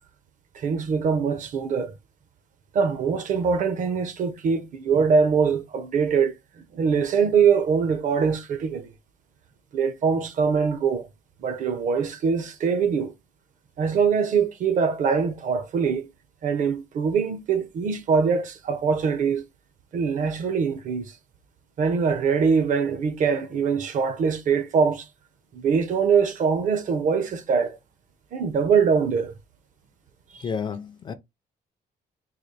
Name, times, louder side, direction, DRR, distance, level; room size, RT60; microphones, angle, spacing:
voice 1, 0.5-1.9 2.7-6.4 6.7-8.9 9.7-11.1 11.4-13.1 13.8-16.1 16.4-19.4 19.9-21.1 21.8-25.0 25.5-27.8 28.3-29.3 30.3-30.4, right 6 dB, 50° right, 0.7 m, -23 dB
voice 2, 30.4-31.1, left 6 dB, 30° left, 0.4 m, -31 dB
3.8 x 2.3 x 3.2 m
cardioid pair, 160°, 17 cm